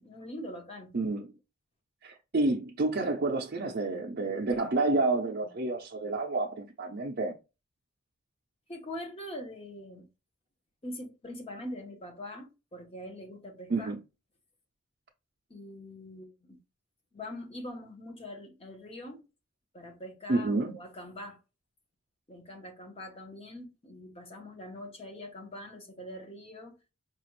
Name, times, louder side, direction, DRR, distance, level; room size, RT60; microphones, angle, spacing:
voice 1, 0.0-0.9 8.7-10.1 10.8-13.9 15.5-16.6 17.1-19.2 19.7-21.4 22.3-26.8, left 1 dB, 30° left, 1.0 m, -43 dB
voice 2, 0.9-1.3 2.0-7.4 13.7-14.0 20.3-20.8, right 2 dB, 50° right, 0.5 m, -29 dB
4.9 x 2.4 x 3.0 m
head